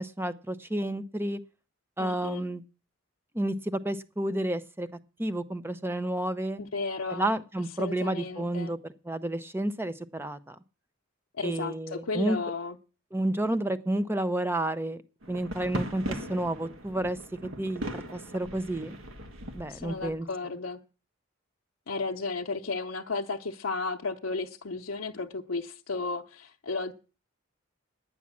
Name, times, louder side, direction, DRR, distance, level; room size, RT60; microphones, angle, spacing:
voice 1, 0.0-1.4 2.0-2.6 3.3-4.9 5.2-6.6 7.1-8.8 9.1-10.6 11.4-12.4 13.1-15.0 15.3-17.2 17.6-19.0 19.5-20.3, right 1 dB, 10° right, 0.7 m, -30 dB
voice 2, 2.0-2.4 6.6-7.2 7.8-8.7 11.3-12.8 19.7-20.8 21.9-26.9, left 3 dB, 90° left, 0.8 m, -34 dB
sound 1, 15.2-20.2, right 1 dB, 85° right, 1.5 m, -39 dB
9.8 x 9.6 x 7.4 m
head